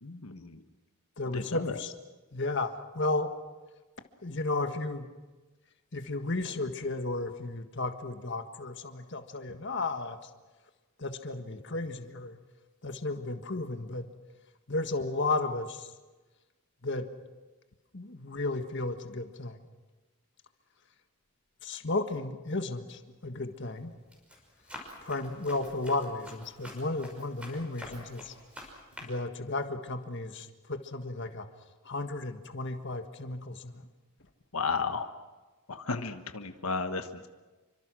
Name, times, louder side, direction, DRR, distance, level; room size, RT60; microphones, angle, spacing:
voice 1, 0.0-0.6 1.3-1.8 34.5-35.1 35.7-37.3, left 4 dB, 90° left, 7 dB, 1.4 m, -33 dB
voice 2, 1.2-1.9 2.3-3.4 4.2-5.1 5.9-10.3 11.0-12.4 12.8-14.1 14.7-15.9 16.8-17.1 17.9-19.6 21.6-23.9 25.0-28.3 29.0-31.5 31.9-33.9, left 2 dB, 55° left, 7 dB, 1.7 m, -34 dB
Run, 22.9-23.3 23.8-29.0, left 1 dB, 5° right, 5.9 m, -48 dB
28.0 x 25.0 x 6.3 m, 1.2 s
head